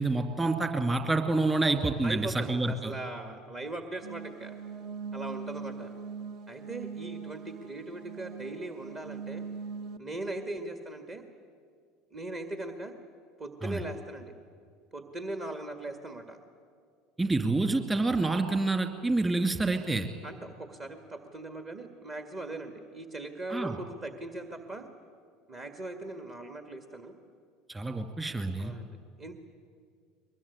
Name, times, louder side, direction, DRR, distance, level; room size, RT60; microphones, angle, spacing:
voice 1, 0.0-2.9 13.6-13.8 17.2-20.1 23.5-23.8 27.7-28.7, right 2 dB, 15° right, 7 dB, 2.6 m, -28 dB
voice 2, 2.0-4.5 5.1-5.9 6.5-9.4 10.0-11.2 12.1-12.9 13.4-14.3 14.9-16.4 20.2-24.9 25.5-27.1 28.6-28.9 29.2-29.3, right 2 dB, 35° right, 6 dB, 1.9 m, -39 dB
sound 1, 4.0-10.0, right 5 dB, 50° right, 1.2 m, -41 dB
22.5 x 22.0 x 9.9 m, 2.1 s
figure-of-eight pair, 70°, 0 cm